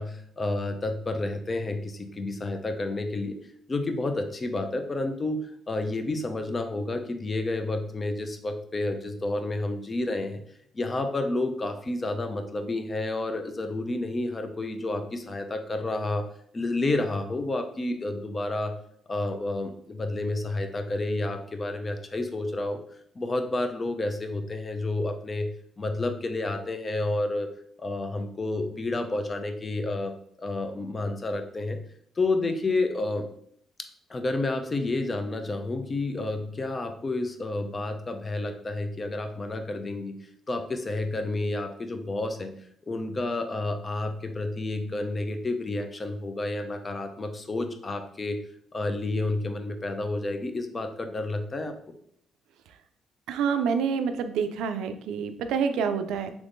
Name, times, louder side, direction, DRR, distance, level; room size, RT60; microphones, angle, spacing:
voice 1, 0.0-3.4 3.7-10.4 10.7-16.3 16.5-18.8 19.1-22.8 23.2-27.5 27.8-31.9 32.2-33.2 34.1-40.2 40.5-42.5 42.8-48.4 48.7-51.8, left 2 dB, 30° left, 6 dB, 0.5 m, -30 dB
voice 2, 53.3-56.3, right 6 dB, 90° right, 8 dB, 0.3 m, -27 dB
3.5 x 3.0 x 2.5 m, 0.67 s
cardioid pair, 90°, 0 cm